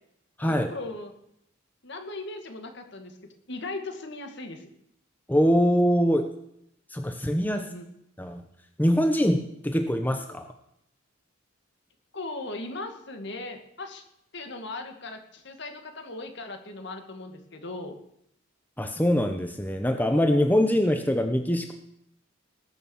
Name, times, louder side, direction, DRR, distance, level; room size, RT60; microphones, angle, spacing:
voice 1, 0.4-1.1 1.8-3.2 3.5-4.7 7.5-7.9 12.1-14.0 14.3-18.0, left 2 dB, 60° left, 5 dB, 2.1 m, -38 dB
voice 2, 5.3-6.3 6.9-7.7 8.2-8.4 8.8-10.5 18.8-21.7, equal, 10° left, 6 dB, 0.9 m, -23 dB
19.5 x 7.1 x 7.2 m, 0.75 s
head